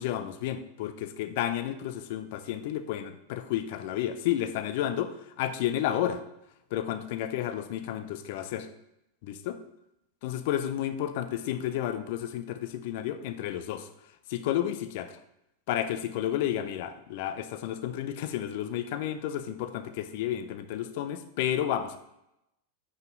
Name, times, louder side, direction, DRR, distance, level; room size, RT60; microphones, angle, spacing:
voice 1, 0.0-6.2 6.7-8.7 9.2-9.6 10.2-13.9 14.3-15.1 15.7-22.0, left 11 dB, 50° left, 10 dB, 0.5 m, -31 dB
6.2 x 5.3 x 3.8 m, 0.84 s
figure-of-eight pair, 90°, 0 cm